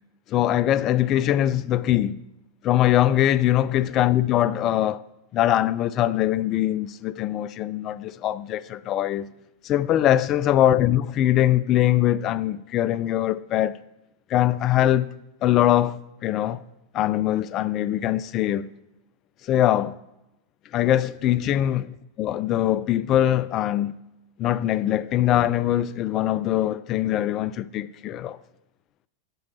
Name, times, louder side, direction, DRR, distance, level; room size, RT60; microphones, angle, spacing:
voice 1, 0.3-2.2 2.6-5.0 5.3-9.3 9.6-13.8 14.3-15.1 15.4-16.6 16.9-18.7 19.4-20.0 20.7-21.8 22.2-24.0 24.4-28.4, left 12 dB, 35° left, 0.3 m, -22 dB
9.1 x 6.3 x 4.2 m
figure-of-eight pair, 90°, 0 cm